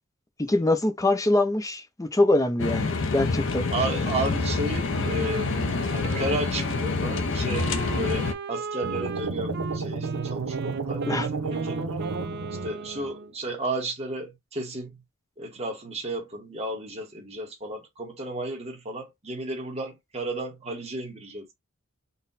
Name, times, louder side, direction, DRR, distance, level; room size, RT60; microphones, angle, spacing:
voice 1, 0.4-3.7 11.1-11.3, left 2 dB, 15° left, 0.5 m, -24 dB
sound 1, 2.6-8.3, left 3 dB, 55° left, 0.6 m, -27 dB
voice 2, 3.7-5.5 5.9-11.8 12.6-14.9 15.4-21.5, right 2 dB, 30° right, 1.1 m, -33 dB
Wind instrument woodwind instrument, 4.9-13.3, right 5 dB, 45° right, 0.4 m, -38 dB
sound 2, 8.8-13.1, right 4 dB, 80° right, 0.9 m, -31 dB
4.1 x 2.2 x 4.0 m
head